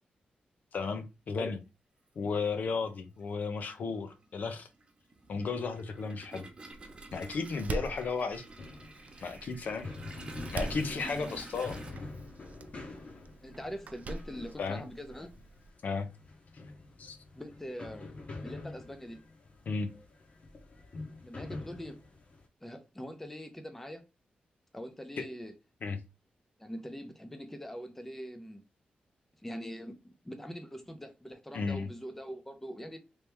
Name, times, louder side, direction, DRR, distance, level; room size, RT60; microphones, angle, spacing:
voice 1, 0.7-1.6 2.2-4.7 5.3-6.5 7.1-8.4 9.2-9.9 10.5-11.8 14.6-14.8 15.8-16.1 17.0-17.2 19.7-19.9 25.2-25.3 25.8-26.0 31.5-31.9, left 4 dB, 65° left, 0.7 m, -34 dB
Toilet flush, 1.4-1.5 2.8-3.0 3.3-11.9, right 2 dB, 35° right, 1.0 m, -49 dB
Door, 6.7-15.7, right 3 dB, 50° right, 0.4 m, -44 dB
sound 1, 8.6-22.5, left 2 dB, 45° left, 1.0 m, -46 dB
voice 2, 13.4-15.3 17.3-18.1 18.4-19.2 21.2-22.0 22.6-24.0 24.7-25.5 26.6-28.6 29.4-30.0 30.2-33.0, equal, 10° left, 0.7 m, -43 dB
3.1 x 2.9 x 3.4 m
wide cardioid pair, 105°, 3 cm